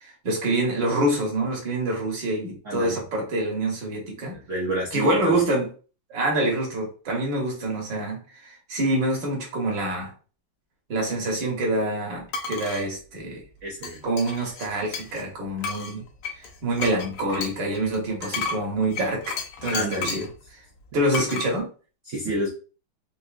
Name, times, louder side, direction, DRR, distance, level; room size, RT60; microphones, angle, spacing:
voice 1, 0.0-4.4 4.9-5.7 6.1-10.1 10.9-13.4 14.0-16.0 16.3-20.3 20.9-21.7, right 1 dB, 60° right, 0 dB, 1.7 m, -26 dB
voice 2, 2.6-3.0 4.3-5.4 13.6-14.0 19.7-20.2 21.2-21.3 22.1-22.5, right 1 dB, 80° right, -2 dB, 0.6 m, -29 dB
sound 1, 12.3-12.9 13.8-15.3 15.6-20.3 21.1-21.5, left 5 dB, 75° left, 1.5 m, -33 dB
4.5 x 2.6 x 2.4 m, 0.37 s
omnidirectional pair, 2.4 m